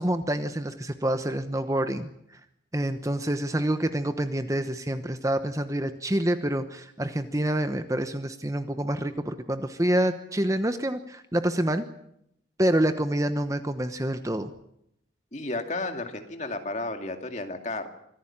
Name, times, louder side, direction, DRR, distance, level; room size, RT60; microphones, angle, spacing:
voice 1, 0.0-2.1 2.7-11.9 12.6-14.5, right 1 dB, 15° right, 9 dB, 1.0 m, -27 dB
voice 2, 15.3-17.9, left 2 dB, 40° left, 5 dB, 2.4 m, -32 dB
25.5 x 15.0 x 8.8 m, 0.77 s
head